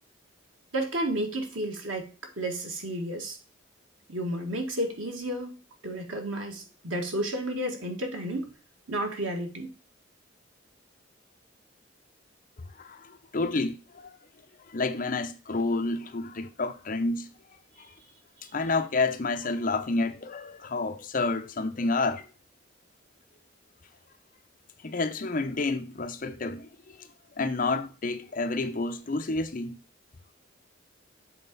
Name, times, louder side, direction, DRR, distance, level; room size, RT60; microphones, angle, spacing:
voice 1, 0.7-2.1 2.4-3.4 4.1-5.6 5.8-8.5 8.9-9.7, right 1 dB, 90° right, 1.8 m, -31 dB
voice 2, 12.8-14.1 14.7-17.3 18.5-22.3 24.8-27.0 27.4-29.8, left 3 dB, 45° left, 0.7 m, -29 dB
7.5 x 4.1 x 4.0 m
head